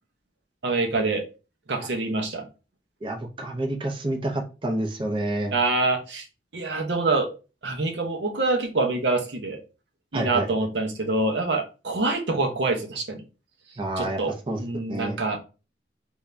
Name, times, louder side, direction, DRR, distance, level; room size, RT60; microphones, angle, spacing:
voice 1, 0.6-1.3 1.7-2.5 5.5-6.3 6.5-7.3 7.6-9.6 10.1-13.2 14.0-14.3 14.6-15.4, right 3 dB, 75° right, 3 dB, 0.8 m, -25 dB
voice 2, 3.0-5.5 10.1-10.5 13.8-14.2 14.5-14.6 14.9-15.2, right 1 dB, 30° right, 3 dB, 0.6 m, -28 dB
3.5 x 2.6 x 3.3 m, 0.31 s
head